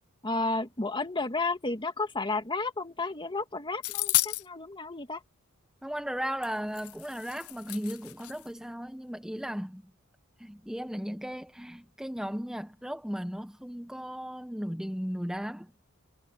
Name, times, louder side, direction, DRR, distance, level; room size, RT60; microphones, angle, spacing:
voice 1, 0.2-5.2, left 3 dB, 25° left, 1.8 m, -32 dB
sound 1, 3.8-4.5 6.4-6.5 6.7-8.5, left 20 dB, 80° left, 0.4 m, -31 dB
voice 2, 5.8-9.9 10.4-15.7, equal, 5° right, 0.9 m, -36 dB
head